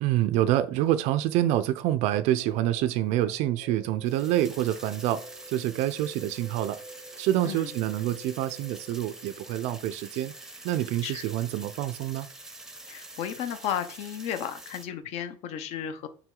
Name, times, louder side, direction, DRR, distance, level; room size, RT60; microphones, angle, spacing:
voice 1, 0.0-6.8 7.2-10.3 10.6-12.3, right 13 dB, 50° right, 0.5 m, -27 dB
sound 1, 2.2-10.2, right 1 dB, 75° left, 2.0 m, -50 dB
sound 2, 4.0-14.8, right 2 dB, 5° right, 0.8 m, -46 dB
voice 2, 12.9-16.1, left 9 dB, 45° left, 0.9 m, -33 dB
5.8 x 4.9 x 3.8 m
supercardioid pair, 150°, 15 cm